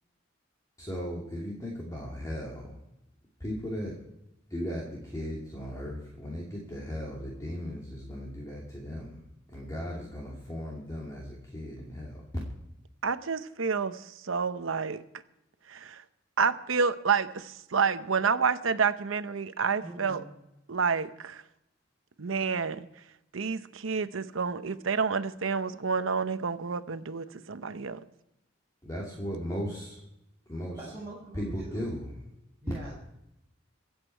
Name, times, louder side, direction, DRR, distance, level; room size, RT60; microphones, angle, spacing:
voice 1, 0.8-2.7 3.4-3.9 4.5-9.2 9.5-12.2 28.8-30.0 30.5-30.8 31.3-32.1, equal, 20° left, -4 dB, 2.5 m, -37 dB
voice 2, 13.0-15.0 15.7-16.0 16.4-20.2 20.7-21.4 22.2-22.9 23.3-28.0, right 5 dB, 90° right, 12 dB, 0.8 m, -29 dB
voice 3, 19.8-20.2 30.8-31.9 32.6-33.0, right 2 dB, 10° right, -7 dB, 4.6 m, -43 dB
24.5 x 8.3 x 4.6 m, 0.87 s
head